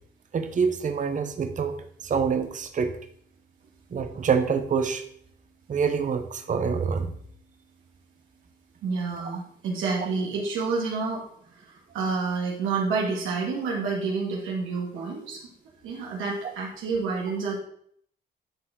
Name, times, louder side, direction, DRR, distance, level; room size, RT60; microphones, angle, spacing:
voice 1, 0.3-2.9 3.9-5.0 5.7-7.1, right 6 dB, 40° right, 7 dB, 0.9 m, -26 dB
voice 2, 8.8-11.2 11.9-15.4 15.8-17.6, right 4 dB, 85° right, -3 dB, 2.2 m, -28 dB
11.5 x 4.3 x 3.7 m, 0.64 s
cardioid pair, 90°, 20 cm